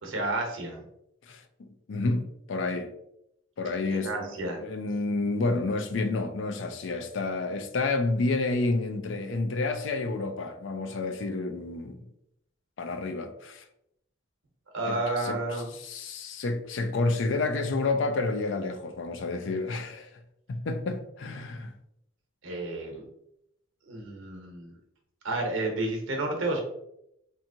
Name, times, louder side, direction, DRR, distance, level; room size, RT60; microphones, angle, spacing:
voice 1, 0.0-0.8 3.9-4.6 14.7-15.7 22.4-23.0 23.8-24.7 25.2-26.6, right 2 dB, 75° right, 0.9 m, -31 dB
voice 2, 1.9-2.2 2.5-2.9 3.6-12.0 12.8-13.6 14.9-20.1 20.5-21.7, left 3 dB, 65° left, 0.4 m, -30 dB
3.4 x 2.9 x 2.7 m
head